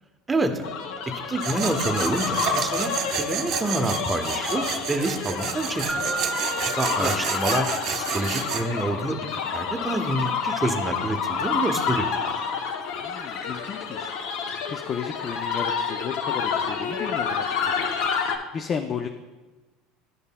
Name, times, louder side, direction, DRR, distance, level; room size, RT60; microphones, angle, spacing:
voice 1, 0.3-0.7 1.1-6.1 6.7-12.1, right 2 dB, 15° right, 6 dB, 0.8 m, -28 dB
sound 1, 0.6-18.4, left 6 dB, 70° left, 0.7 m, -29 dB
Tools, 1.4-8.6, right 8 dB, 55° right, 0.7 m, -30 dB
Mallet percussion, 5.9-8.4, right 5 dB, ahead, 1.3 m, -34 dB
voice 2, 13.0-14.1 14.4-17.9 18.2-19.1, left 7 dB, 40° left, 6 dB, 0.4 m, -34 dB
11.5 x 5.3 x 2.2 m, 1.2 s
supercardioid pair, 105°, 0 cm